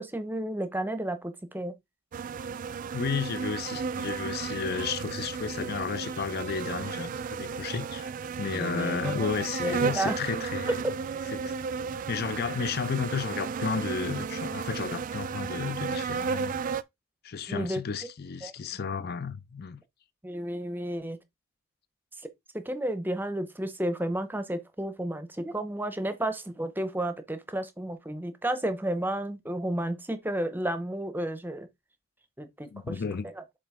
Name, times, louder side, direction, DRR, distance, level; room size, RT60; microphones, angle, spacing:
voice 1, 0.0-1.8 8.5-9.3 9.6-10.2 10.8-10.9 17.5-17.8 18.4-18.5 20.2-21.2 22.5-31.7 32.4-32.9, right 1 dB, 10° right, 0.7 m, -32 dB
sound 1, 2.1-16.8, right 5 dB, 40° right, 0.3 m, -33 dB
voice 2, 2.9-8.1 8.4-10.8 11.3-11.5 12.1-16.5 17.2-19.8 32.6-33.3, left 5 dB, 50° left, 0.5 m, -33 dB
7.4 x 3.0 x 4.8 m
head